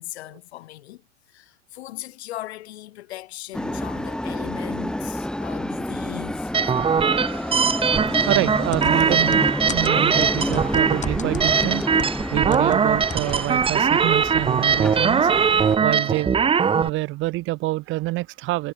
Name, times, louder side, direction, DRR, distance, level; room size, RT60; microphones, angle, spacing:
voice 1, 0.0-6.6 7.3-7.4, left 15 dB, 60° left, 7.9 m, -38 dB
sound 1, 3.5-15.8, left 1 dB, ahead, 1.6 m, -29 dB
sound 2, 6.5-16.9, right 6 dB, 15° right, 1.2 m, -21 dB
voice 2, 8.3-11.8 12.3-15.3 15.8-16.4 16.8-18.7, right 19 dB, 35° right, 0.9 m, -27 dB
sound 3, 8.7-12.8 13.1-13.4 13.6-13.7, left 6 dB, 20° left, 6.9 m, -34 dB
hypercardioid pair, 100°, 36 cm